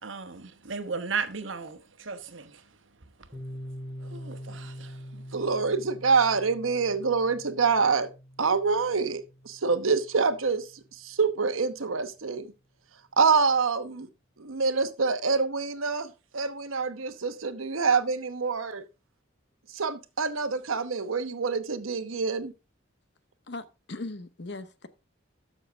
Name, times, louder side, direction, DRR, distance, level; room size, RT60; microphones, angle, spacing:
voice 1, 0.0-2.6 4.0-5.1, right 5 dB, 75° right, 1.2 m, -36 dB
Piano, 3.3-10.8, equal, 15° right, 2.2 m, -44 dB
voice 2, 5.3-8.1 8.4-10.6 11.0-12.5 13.2-14.1 14.4-18.8 19.7-22.5, right 4 dB, 90° right, 1.0 m, -26 dB
voice 3, 23.5-24.9, left 2 dB, 55° left, 0.9 m, -39 dB
13.0 x 6.5 x 3.5 m
head